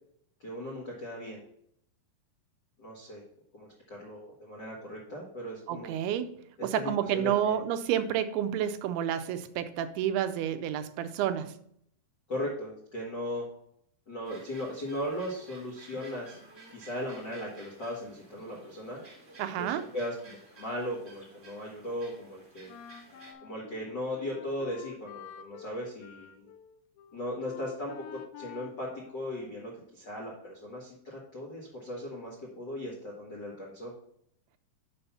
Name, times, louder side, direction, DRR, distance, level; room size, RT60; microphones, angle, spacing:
voice 1, 0.4-1.4 2.8-3.2 3.5-5.9 6.6-7.6 12.3-13.5 14.1-16.4 16.7-19.0 19.6-22.7 23.4-26.5 27.1-33.9, left 1 dB, 65° left, -4 dB, 1.0 m, -38 dB
voice 2, 5.7-6.4 6.6-11.6 19.4-19.9, right 10 dB, 85° right, 10 dB, 2.5 m, -30 dB
sound 1, 14.2-23.3, right 3 dB, 35° right, 1.0 m, -54 dB
Wind instrument woodwind instrument, 22.7-29.9, left 10 dB, 80° left, 2.4 m, -49 dB
6.7 x 5.6 x 5.5 m, 0.71 s
omnidirectional pair, 4.5 m